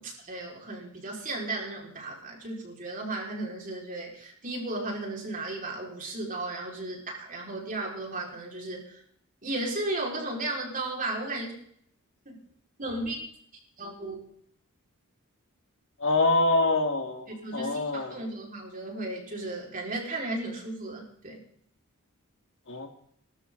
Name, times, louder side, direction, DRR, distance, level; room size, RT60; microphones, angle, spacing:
voice 1, 0.0-9.0 9.4-11.5 12.3-12.4 12.8-13.2 13.8-14.2 17.4-21.4, right 2 dB, 40° right, -1 dB, 5.2 m, -35 dB
voice 2, 16.0-18.2 22.7-22.9, left 2 dB, 60° left, 5 dB, 2.3 m, -25 dB
21.0 x 13.0 x 4.0 m, 0.66 s
head